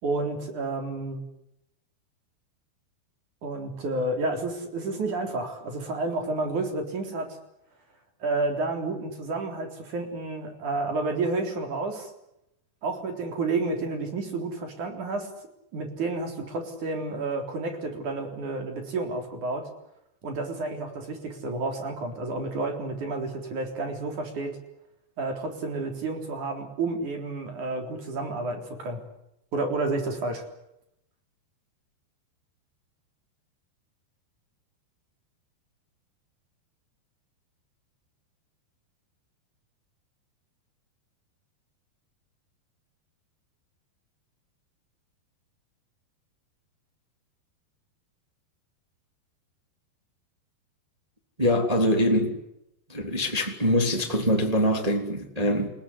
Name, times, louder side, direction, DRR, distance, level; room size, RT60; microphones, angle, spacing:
voice 1, 0.0-1.2 3.4-7.4 8.2-12.1 12.8-15.3 15.7-19.7 20.2-24.5 25.2-29.0 29.5-30.4, right 3 dB, 45° right, 4 dB, 5.0 m, -30 dB
voice 2, 51.4-52.4 52.9-55.7, equal, 10° right, 2 dB, 2.6 m, -24 dB
29.5 x 18.0 x 9.8 m, 0.82 s
omnidirectional pair, 5.0 m